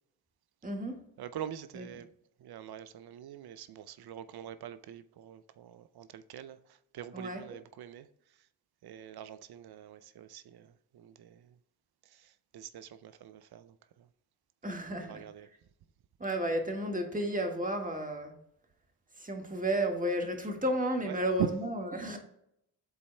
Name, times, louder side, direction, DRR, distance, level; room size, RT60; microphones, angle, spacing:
voice 1, 0.6-1.0 1.7-1.9 7.1-7.4 14.6-15.2 16.2-18.3 19.2-22.2, right 1 dB, 20° right, 1.7 m, -32 dB
voice 2, 1.2-2.1 2.4-6.6 6.9-8.1 8.8-11.4 12.5-13.7 15.0-15.5 21.0-21.5, right 10 dB, 55° right, 0.6 m, -42 dB
12.0 x 4.1 x 2.3 m
hypercardioid pair, 40°, 45 cm